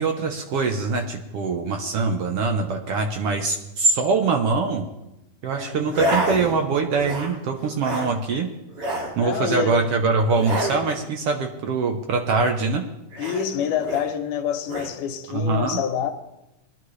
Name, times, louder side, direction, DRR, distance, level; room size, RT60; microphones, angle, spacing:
voice 1, 0.0-4.9 5.4-8.5 9.2-12.8 15.3-15.8, right 4 dB, 65° right, 1.5 m, -23 dB
voice 2, 5.6-6.0 9.2-9.9 13.2-16.1, left 8 dB, 80° left, 2.5 m, -27 dB
sound 1, 5.9-6.6 6.9-7.4 7.6-8.1 8.7-9.1 10.3-10.8 13.1-14.1 14.6-14.9, right 1 dB, 50° right, 3.2 m, -28 dB
21.0 x 11.5 x 3.2 m
omnidirectional pair, 3.6 m